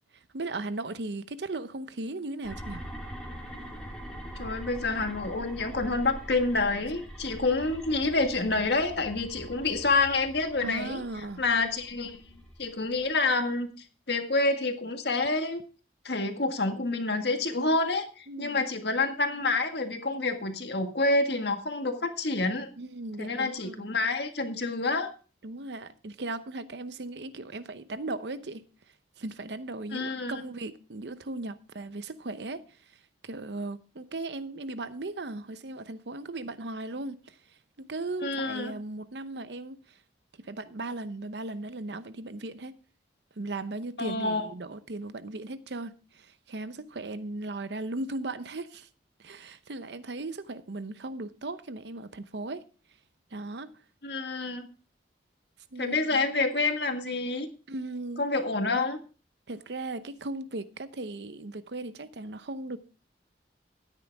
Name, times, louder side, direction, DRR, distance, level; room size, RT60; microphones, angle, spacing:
voice 1, 0.3-2.9 10.6-11.4 18.3-18.7 22.8-23.9 25.4-28.6 29.2-32.6 33.2-37.4 37.8-40.0 40.4-42.7 43.4-48.9 49.2-52.7 53.3-53.7 55.7-56.3 57.7-58.2 59.5-62.8, right 2 dB, 75° right, 0.8 m, -37 dB
sound 1, 2.4-13.2, equal, 5° left, 2.8 m, -43 dB
voice 2, 4.4-11.0 11.4-12.2 12.6-13.7 14.1-15.6 16.0-22.7 23.2-25.1 29.9-30.4 38.2-38.7 44.0-44.5 54.0-54.7 55.8-57.5 58.2-59.0, left 3 dB, 70° left, 1.8 m, -28 dB
13.0 x 9.8 x 3.5 m
head